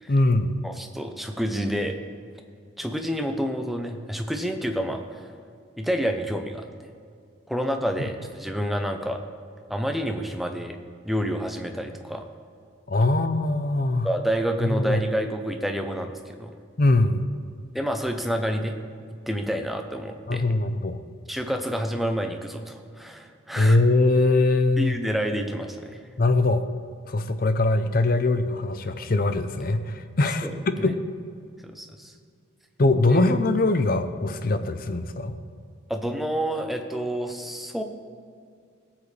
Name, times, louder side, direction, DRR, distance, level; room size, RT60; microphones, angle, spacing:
voice 1, 0.1-0.5 12.9-14.1 14.7-15.0 16.8-17.2 20.3-21.0 23.6-25.0 26.2-26.6 27.1-30.5 30.8-31.0 32.8-35.3, left 2 dB, 45° left, 10 dB, 0.6 m, -22 dB
voice 2, 0.6-2.0 2.8-5.2 5.8-6.9 7.5-9.2 9.7-10.8 11.0-12.2 14.0-16.6 17.7-18.7 19.3-20.4 21.3-23.8 24.8-26.0 30.4-30.9 31.6-32.1 33.1-33.2 35.9-37.8, equal, ahead, 4 dB, 0.6 m, -29 dB
16.5 x 7.4 x 3.3 m, 2.3 s
head